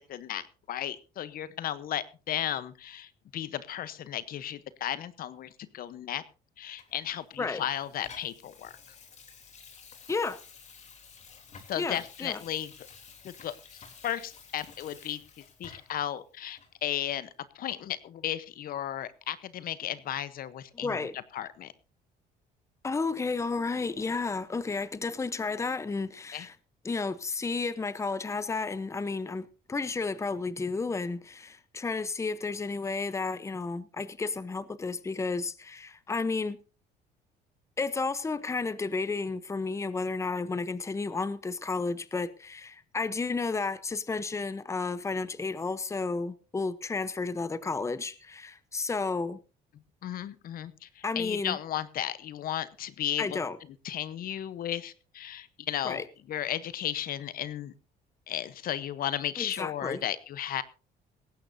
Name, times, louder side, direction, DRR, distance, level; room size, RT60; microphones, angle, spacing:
voice 1, 0.1-6.2 6.6-8.8 11.7-12.7 13.2-13.5 14.0-15.2 15.6-17.3 17.5-21.1 21.3-21.7 26.3-26.5 50.0-53.4 53.8-57.7 58.3-60.6, left 11 dB, 60° left, 1.0 m, -34 dB
Water tap faucet / Sink (filling or washing), 6.8-16.1 16.6-16.7, left 5 dB, 45° left, 3.2 m, -52 dB
voice 2, 10.1-10.4 11.7-12.4 20.7-21.2 22.8-26.5 26.8-36.6 37.8-49.4 51.0-51.6 53.2-53.6 55.8-56.0 59.4-60.0, left 4 dB, 15° left, 0.8 m, -32 dB
18.5 x 15.5 x 2.7 m
cardioid pair, 110°, 17 cm